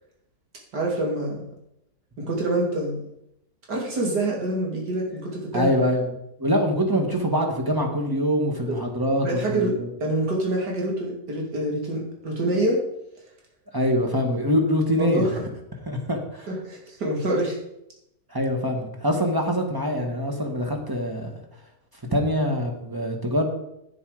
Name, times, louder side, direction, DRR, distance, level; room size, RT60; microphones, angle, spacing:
voice 1, 0.7-1.5 2.2-3.0 3.7-5.7 9.2-12.8 15.0-15.4 16.5-17.6, right 1 dB, 70° right, -2 dB, 3.2 m, -26 dB
voice 2, 5.5-6.1 6.4-9.9 13.7-15.3 15.8-16.5 18.3-21.3 22.1-23.4, equal, 15° right, 2 dB, 1.8 m, -24 dB
10.0 x 9.3 x 5.0 m, 0.79 s
omnidirectional pair, 1.9 m